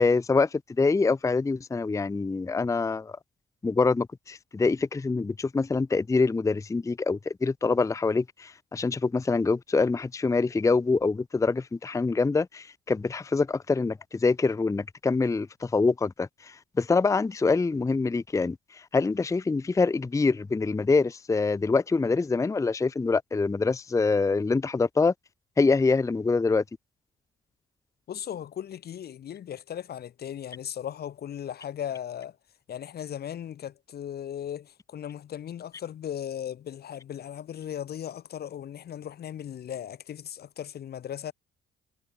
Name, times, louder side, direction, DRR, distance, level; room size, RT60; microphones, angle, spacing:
voice 1, 0.0-3.1 3.6-25.1 25.6-26.6, left 4 dB, 15° left, 0.6 m, -25 dB
voice 2, 28.1-32.4 32.7-41.3, left 10 dB, 55° left, 0.8 m, -37 dB
cardioid pair, 90°, 20 cm